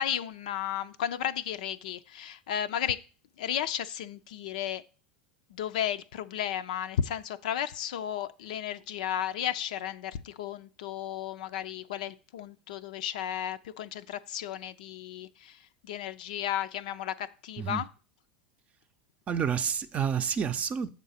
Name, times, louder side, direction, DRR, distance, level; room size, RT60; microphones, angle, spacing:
voice 1, 0.0-3.0 3.4-4.8 5.5-17.9, left 10 dB, 70° left, 0.5 m, -34 dB
voice 2, 17.6-17.9 19.3-20.9, right 7 dB, 30° right, 0.6 m, -29 dB
7.3 x 3.7 x 5.6 m
hypercardioid pair, 80°, 4 cm